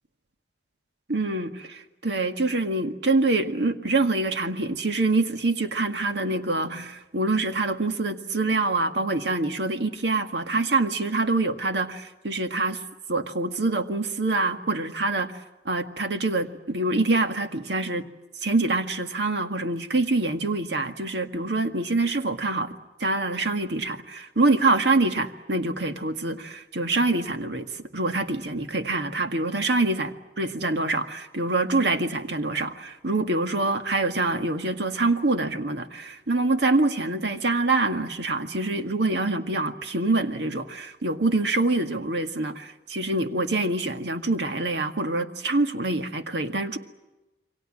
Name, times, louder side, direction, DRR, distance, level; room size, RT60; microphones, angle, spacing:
voice 1, 1.1-12.8 13.1-15.3 15.7-18.1 18.4-46.8, right 2 dB, 65° right, 7 dB, 1.9 m, -25 dB
28.5 x 24.0 x 7.6 m, 1.0 s
head